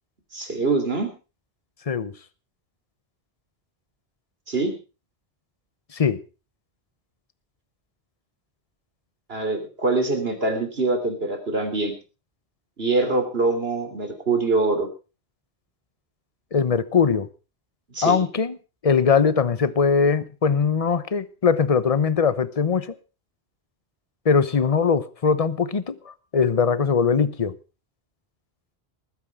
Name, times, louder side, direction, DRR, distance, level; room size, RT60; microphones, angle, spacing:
voice 1, 0.3-1.1 4.5-4.7 9.3-11.9 12.8-14.9 17.9-18.2, right 3 dB, 65° right, 3.6 m, -24 dB
voice 2, 16.5-17.3 18.0-18.6 18.8-23.0 24.2-27.5, left 6 dB, 35° left, 0.9 m, -21 dB
20.5 x 9.6 x 4.8 m
omnidirectional pair, 1.1 m